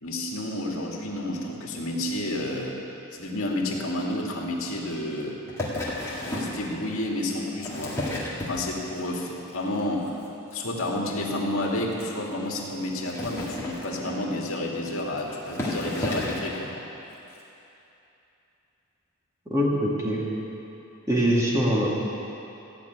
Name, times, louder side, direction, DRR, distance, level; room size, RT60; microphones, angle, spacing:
voice 1, 0.0-2.8 3.1-5.4 6.2-8.0 8.5-10.1 10.5-16.7, left 1 dB, 70° left, -2 dB, 2.0 m, -30 dB
sound 1, 5.5-6.6 7.4-9.0 9.4-9.8 10.1-10.2 10.5-10.6 10.8-10.9 11.2-11.3 11.9-12.0 13.0-14.3 15.0-15.1 15.5-16.5 17.3-17.4, left 1 dB, 10° left, 1.9 m, -32 dB
voice 2, 19.5-20.2 21.1-21.9, equal, 15° right, -4 dB, 1.9 m, -23 dB
15.0 x 6.1 x 9.3 m, 2.9 s
head